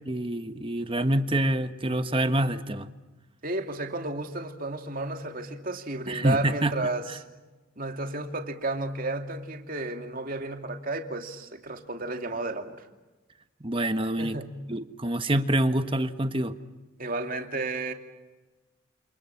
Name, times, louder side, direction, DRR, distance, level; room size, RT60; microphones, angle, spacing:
voice 1, 0.1-2.9 6.1-6.7 13.6-14.4 14.7-16.5, right 1 dB, 25° right, 9 dB, 1.3 m, -26 dB
voice 2, 3.4-7.2 7.8-12.9 14.2-14.6 17.0-17.9, right 2 dB, 40° right, 4 dB, 2.6 m, -32 dB
28.5 x 27.5 x 7.2 m, 1.2 s
head